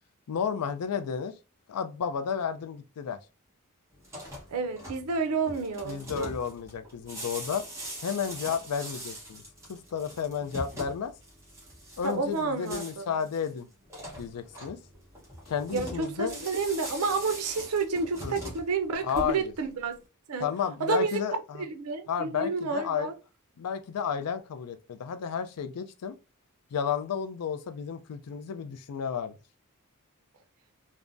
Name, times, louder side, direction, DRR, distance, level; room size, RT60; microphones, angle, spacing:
voice 1, 0.3-1.3 1.7-3.2 5.8-7.6 8.0-9.4 9.7-11.1 12.0-13.7 14.2-14.8 15.5-16.4 18.2-18.3 19.0-19.5 20.4-21.6 22.1-23.1 23.6-26.1 26.7-29.3, left 7 dB, 85° left, 0.4 m, -32 dB
sound 1, 4.0-19.6, right 1 dB, 15° right, 1.0 m, -42 dB
voice 2, 4.5-6.3 12.0-13.1 15.7-20.0 20.3-20.5 20.8-21.2 21.6-23.1, right 4 dB, 75° right, 0.5 m, -30 dB
3.4 x 2.0 x 2.5 m
head